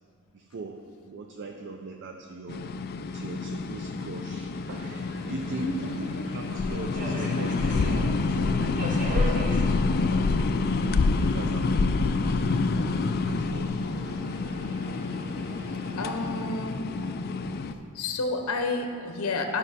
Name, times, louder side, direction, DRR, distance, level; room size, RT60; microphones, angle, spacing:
voice 1, 0.3-2.8 3.1-10.4 10.6-12.7 13.3-13.7 17.4-17.5 19.0-19.1, right 3 dB, 55° right, 5 dB, 0.4 m, -41 dB
sound 1, 2.5-17.7, left 3 dB, 45° left, 0.3 m, -27 dB
Subway metro underground, 4.7-16.3, right 1 dB, 40° right, 1.0 m, -40 dB
voice 2, 16.0-16.9 17.9-19.6, left 3 dB, 85° left, 5 dB, 0.7 m, -30 dB
11.0 x 5.4 x 4.1 m, 2.4 s
head